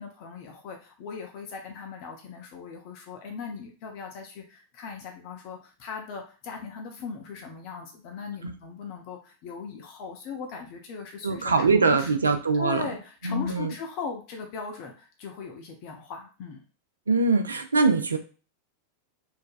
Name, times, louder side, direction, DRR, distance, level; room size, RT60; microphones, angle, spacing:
voice 1, 0.0-11.5 11.9-12.1 12.5-16.6, left 5 dB, 45° left, 2 dB, 0.6 m, -39 dB
voice 2, 11.2-12.8 13.2-13.7 17.1-18.2, right 3 dB, 75° right, 7 dB, 0.4 m, -23 dB
3.1 x 2.1 x 2.4 m, 0.35 s
figure-of-eight pair, 90°, 0 cm